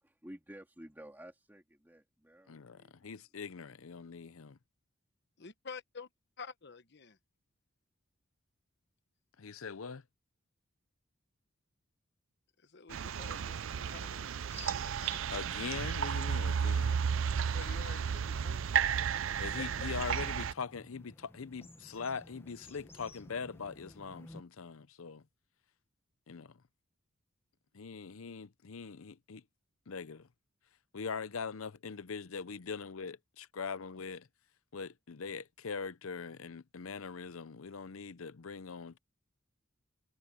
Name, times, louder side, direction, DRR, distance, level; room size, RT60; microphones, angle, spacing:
voice 1, 0.0-3.1, equal, 10° right, 2.5 m, -52 dB
voice 2, 2.5-4.6 9.4-10.0 15.3-17.0 19.4-25.2 26.3-26.6 27.7-29.4 29.9-30.3 30.9-34.3 34.7-39.0, left 5 dB, 85° left, 0.7 m, -42 dB
voice 3, 5.4-6.1 6.4-7.2 12.6-14.6 17.3-18.6 19.6-19.7, left 5 dB, 55° left, 1.1 m, -49 dB
sound 1, 12.9-20.5, right 7 dB, 70° right, 0.5 m, -33 dB
sound 2, 13.6-24.4, left 2 dB, 10° left, 0.9 m, -55 dB
head